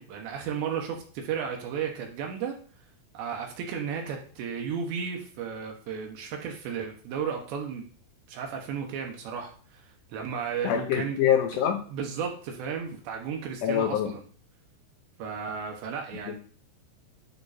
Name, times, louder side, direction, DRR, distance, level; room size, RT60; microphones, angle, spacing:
voice 1, 0.0-2.6 3.1-7.9 8.3-9.8 10.1-11.2 11.9-14.2 15.2-16.4, right 7 dB, 75° right, 1 dB, 3.3 m, -34 dB
voice 2, 10.6-11.8 13.6-14.1 16.3-16.4, left 9 dB, 70° left, 5 dB, 3.2 m, -25 dB
11.5 x 3.9 x 4.3 m, 0.43 s
omnidirectional pair, 5.3 m